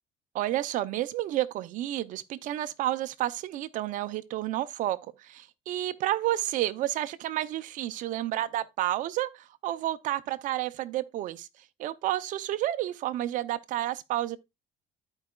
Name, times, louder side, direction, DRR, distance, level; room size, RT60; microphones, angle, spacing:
voice 1, 0.3-11.5 11.8-14.4, right 14 dB, 65° right, 0.7 m, -30 dB
13.0 x 4.8 x 2.4 m
cardioid pair, 115°, 15 cm